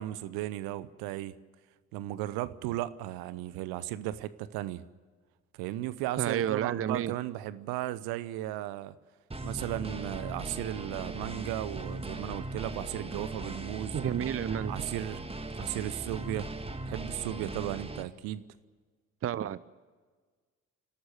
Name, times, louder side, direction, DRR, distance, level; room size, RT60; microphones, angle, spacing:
voice 1, 0.0-1.4 1.9-4.8 5.6-8.9 9.4-13.9 14.7-15.2 15.6-16.5 16.9-18.4, right 14 dB, 60° right, 16 dB, 0.9 m, -35 dB
voice 2, 6.2-7.1 13.9-14.7 19.2-19.7, right 10 dB, 35° right, 18 dB, 0.7 m, -31 dB
sound 1, 9.3-18.0, right 2 dB, 15° right, 1.8 m, -39 dB
29.5 x 12.5 x 9.3 m, 1.5 s
figure-of-eight pair, 45°, 40 cm